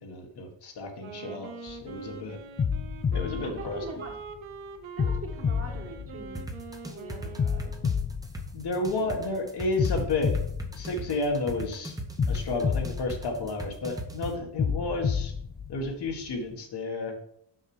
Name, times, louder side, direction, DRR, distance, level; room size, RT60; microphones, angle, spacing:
voice 1, 0.0-2.4 3.1-4.0 8.5-10.4 10.7-12.0 12.3-15.3 15.7-17.2, left 2 dB, 55° left, 2 dB, 1.7 m, -31 dB
Wind instrument woodwind instrument, 0.9-8.1, right 5 dB, 80° right, 1.1 m, -44 dB
sound 1, 1.7-2.0 2.6-4.4 5.0-6.8 7.4-9.2 9.8-11.6 12.2-14.0 14.6-16.4, left 6 dB, 25° left, 0.4 m, -30 dB
voice 2, 3.4-4.1 5.0-6.4 6.9-7.7 9.0-9.3, right 3 dB, 30° right, 1 dB, 1.7 m, -42 dB
sound 2, 6.3-14.3, right 1 dB, 10° right, 0.9 m, -37 dB
6.4 x 5.8 x 4.9 m, 0.70 s
cardioid pair, 135°, 47 cm